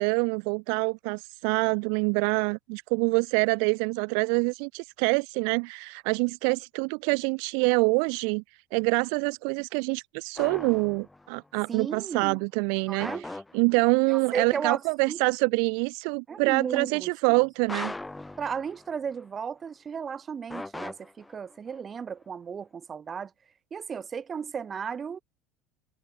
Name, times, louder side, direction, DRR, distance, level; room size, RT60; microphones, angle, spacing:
voice 1, 0.0-8.4 8.7-13.1 13.5-17.9, right 40 dB or more, 75° right, 0.9 m, -26 dB
sound 1, 10.4-11.4 13.0-14.1 17.7-19.2 20.5-21.8, left 2 dB, 10° left, 5.6 m, -39 dB
voice 2, 11.7-12.4 12.9-13.3 14.1-15.2 16.3-17.5 18.4-23.3 23.7-25.2, right 6 dB, 25° right, 3.6 m, -35 dB
supercardioid pair, 125°, 0 cm